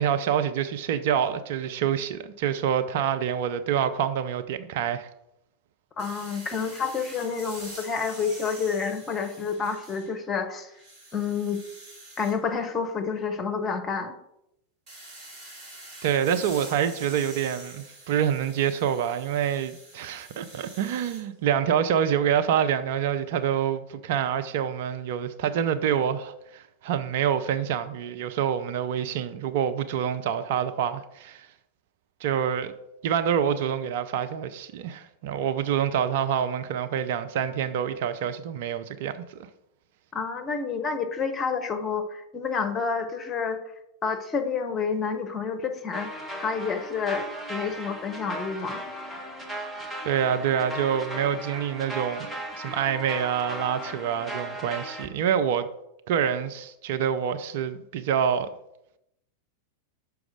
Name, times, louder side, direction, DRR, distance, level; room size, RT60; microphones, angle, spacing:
voice 1, 0.0-5.1 16.0-31.5 32.2-32.7 33.0-39.4 50.0-52.3 52.6-55.7 56.1-58.5, right 8 dB, 50° right, 0.5 m, -26 dB
voice 2, 6.0-10.7 11.1-11.6 12.2-14.2 40.1-43.6 44.0-47.2 47.5-48.8, left 5 dB, 20° left, 1.0 m, -29 dB
sound 1, 6.0-10.3 10.7-12.3 14.9-21.2, right 2 dB, 35° right, 3.2 m, -46 dB
sound 2, 45.9-55.1, right 1 dB, 10° right, 1.3 m, -37 dB
6.0 x 4.7 x 6.3 m
figure-of-eight pair, 90°, 0 cm